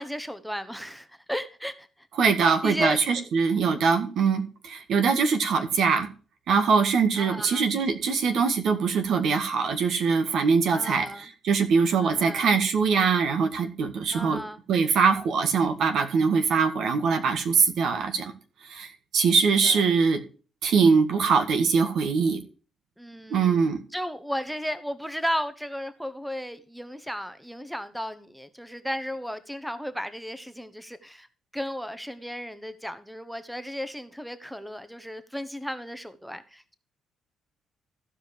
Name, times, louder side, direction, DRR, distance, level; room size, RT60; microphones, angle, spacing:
voice 1, 0.0-1.9 2.4-3.2 7.2-7.6 10.7-11.3 12.0-12.5 14.1-14.6 19.6-19.9 23.0-31.3 31.5-36.8, equal, ahead, 1.0 m, -34 dB
voice 2, 2.2-6.1 6.5-14.4 14.7-18.3 18.7-20.2 20.6-22.4 23.3-23.8, right 5 dB, 70° right, 1.8 m, -23 dB
15.0 x 5.2 x 5.0 m
cardioid pair, 90°, 0 cm